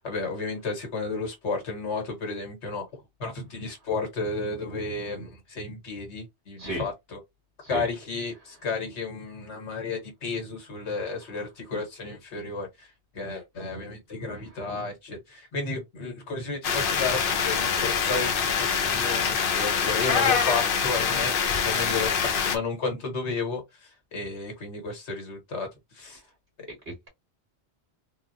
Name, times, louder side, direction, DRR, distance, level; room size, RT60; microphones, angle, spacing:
voice 1, 0.0-7.2 7.7-25.7 25.9-26.2, left 3 dB, 85° left, 1.5 m, -33 dB
voice 2, 6.6-6.8 7.6-7.9 26.9-27.1, right 1 dB, 60° right, 1.9 m, -33 dB
sound 1, 16.6-22.6, left 6 dB, 60° left, 0.8 m, -25 dB
3.8 x 2.0 x 2.6 m
omnidirectional pair, 1.1 m